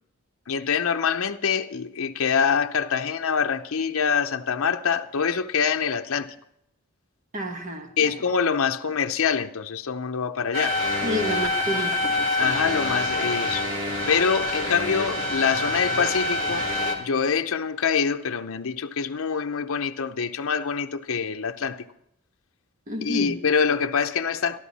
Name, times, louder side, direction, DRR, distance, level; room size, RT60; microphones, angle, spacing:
voice 1, 0.5-6.3 8.0-10.8 12.4-13.6 14.1-16.7 17.0-21.8 23.0-24.6, left 6 dB, 75° left, 0.7 m, -25 dB
voice 2, 7.3-8.1 11.0-12.6 22.9-23.4, equal, 35° right, 1.3 m, -31 dB
sound 1, 10.5-17.0, left 2 dB, 60° right, 2.9 m, -26 dB
13.0 x 13.0 x 4.1 m
head